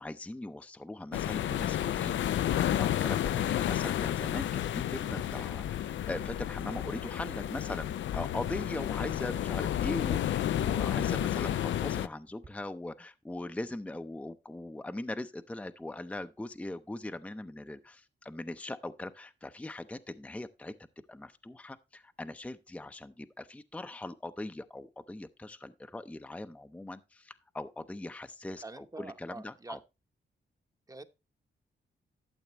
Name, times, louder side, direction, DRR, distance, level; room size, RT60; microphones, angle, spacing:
voice 1, 0.0-20.7 21.1-29.8, left 2 dB, 5° left, 0.5 m, -40 dB
sound 1, 1.1-12.1, left 11 dB, 85° left, 0.4 m, -31 dB
sound 2, 5.0-12.5, right 4 dB, 35° right, 1.3 m, -54 dB
voice 2, 28.6-29.8 30.9-31.0, right 3 dB, 20° right, 0.9 m, -45 dB
12.5 x 7.1 x 2.9 m
cardioid pair, 100°, 19 cm